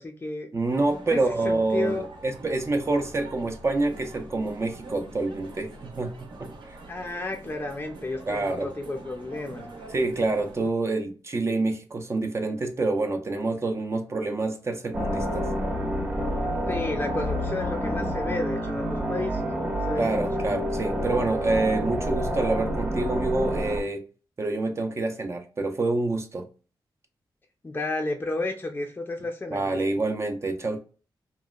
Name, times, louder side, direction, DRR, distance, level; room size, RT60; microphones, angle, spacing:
voice 1, 0.0-0.5 1.1-2.1 6.9-9.7 16.7-19.5 19.9-20.2 27.6-29.7, left 2 dB, 25° left, 0.4 m, -32 dB
voice 2, 0.5-6.8 8.3-8.7 9.9-15.5 20.0-24.0 24.4-26.5 29.5-30.8, right 2 dB, 35° right, 0.4 m, -27 dB
sound 1, 0.7-10.7, right 2 dB, 70° right, 0.7 m, -44 dB
sound 2, 14.9-23.8, equal, 15° right, 0.8 m, -28 dB
2.9 x 2.1 x 2.3 m
cardioid pair, 75°, 8 cm